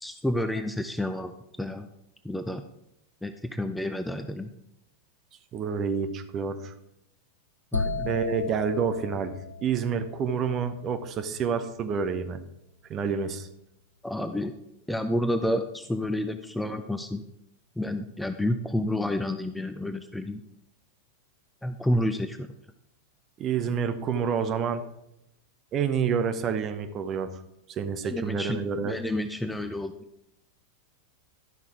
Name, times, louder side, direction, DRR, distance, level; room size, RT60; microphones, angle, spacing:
voice 1, 0.0-1.9 2.2-2.6 3.2-4.5 7.7-8.1 14.0-14.5 14.9-17.2 17.8-20.4 21.6-22.5 28.0-29.9, left 1 dB, 5° left, 8 dB, 0.5 m, -30 dB
voice 2, 5.5-6.7 8.0-9.3 9.6-12.4 12.9-13.5 23.4-24.8 25.7-27.3 27.7-29.0, right 6 dB, 30° right, 9 dB, 0.9 m, -28 dB
sound 1, 7.7-11.5, left 4 dB, 85° left, 0.4 m, -35 dB
12.0 x 5.9 x 4.4 m, 0.82 s
figure-of-eight pair, 90°, 0 cm